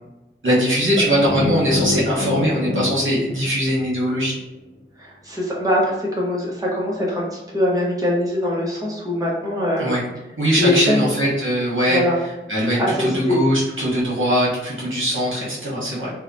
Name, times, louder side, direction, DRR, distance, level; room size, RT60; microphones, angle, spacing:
voice 1, 0.4-4.3 9.8-10.1 10.4-16.1, equal, 70° right, -6 dB, 0.9 m, -21 dB
sound 1, 1.1-4.2, left 2 dB, 75° left, 0.9 m, -27 dB
voice 2, 5.0-10.0 10.6-11.1 11.9-12.2 12.8-13.4, left 1 dB, 15° right, -4 dB, 0.7 m, -22 dB
2.8 x 2.1 x 2.5 m, 0.99 s
wide cardioid pair, 45°, 21 cm